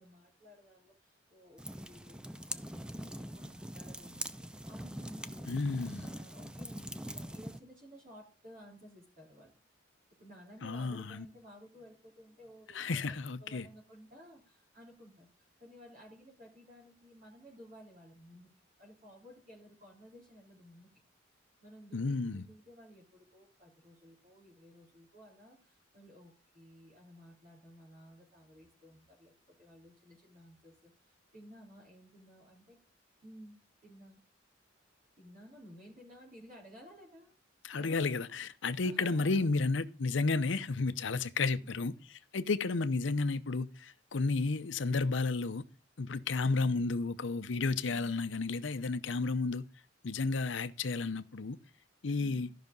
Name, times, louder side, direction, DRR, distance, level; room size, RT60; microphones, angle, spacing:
voice 1, 0.0-4.3 4.7-5.6 6.0-9.5 10.2-18.5 18.8-21.0 21.6-32.8 33.2-34.2 35.2-37.3 37.8-38.2 38.8-39.5 41.6-41.9, equal, 45° right, 3.5 m, -56 dB
sound 1, 1.6-7.6, right 1 dB, 5° right, 0.4 m, -43 dB
voice 2, 5.5-6.1 10.6-11.2 12.7-13.7 21.9-22.4 37.6-45.6 46.0-49.6 50.0-51.6 52.0-52.5, left 3 dB, 70° left, 0.7 m, -32 dB
13.5 x 5.8 x 5.2 m
head